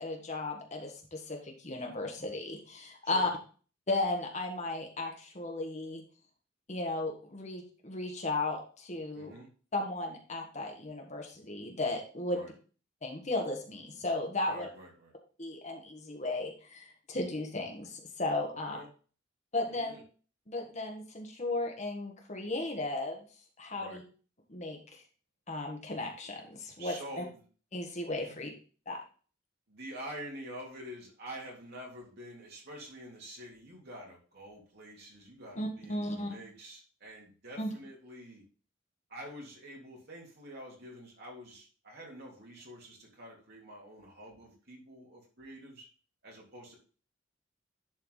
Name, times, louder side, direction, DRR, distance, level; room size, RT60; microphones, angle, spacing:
voice 1, 0.0-3.3 3.9-6.0 6.7-9.3 9.7-12.4 13.0-14.7 15.4-18.8 19.5-20.0 20.5-23.3 23.6-24.0 24.5-24.8 25.5-27.2 27.7-28.5 28.9-29.0 35.6-36.3 37.6-37.7, left 2 dB, 35° left, 1 dB, 1.5 m, -35 dB
voice 2, 9.1-9.5 12.3-12.5 14.4-15.1 18.5-18.9 19.7-20.0 23.7-24.0 26.8-27.4 28.2-28.3 29.7-38.4 39.1-45.9 46.2-46.8, equal, 55° right, -2 dB, 3.1 m, -47 dB
10.5 x 4.6 x 3.9 m, 0.38 s
head